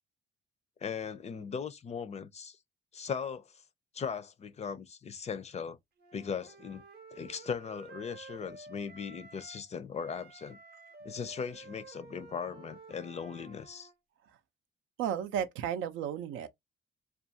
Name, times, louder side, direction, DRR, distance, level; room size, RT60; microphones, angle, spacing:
voice 1, 0.8-2.6 2.9-3.4 3.9-5.8 6.1-6.8 7.1-10.6 11.0-13.9, left 6 dB, 35° left, 0.4 m, -38 dB
Wind instrument woodwind instrument, 6.0-9.7 9.9-13.9, right 3 dB, 50° right, 0.7 m, -52 dB
voice 2, 15.0-16.5, right 9 dB, 90° right, 0.5 m, -33 dB
2.4 x 2.2 x 2.6 m
cardioid pair, 90°, 20 cm